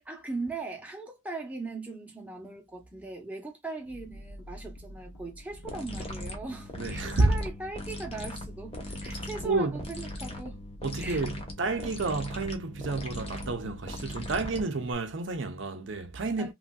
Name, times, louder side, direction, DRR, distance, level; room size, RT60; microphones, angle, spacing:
voice 1, 0.0-10.6 11.0-11.2 16.4-16.5, right 3 dB, 5° right, 0.7 m, -39 dB
sound 1, 3.8-14.4, equal, 90° left, 0.7 m, -49 dB
sound 2, 5.7-14.9, left 1 dB, 30° left, 0.8 m, -39 dB
voice 2, 6.8-7.3 9.1-9.8 10.8-16.5, right 3 dB, 60° right, 0.6 m, -30 dB
3.1 x 2.5 x 2.2 m
head